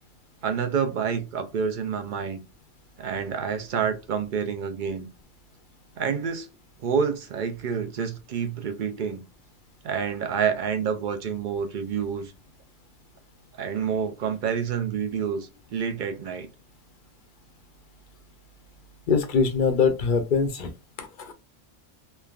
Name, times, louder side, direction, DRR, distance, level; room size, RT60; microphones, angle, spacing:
voice 1, 0.4-2.4 3.0-5.1 6.0-6.5 6.8-9.2 9.8-12.3 13.6-16.5, right 7 dB, 60° right, 0.5 m, -28 dB
voice 2, 19.1-20.7 21.0-21.3, left 5 dB, 55° left, 0.6 m, -23 dB
3.2 x 2.1 x 2.3 m
omnidirectional pair, 1.2 m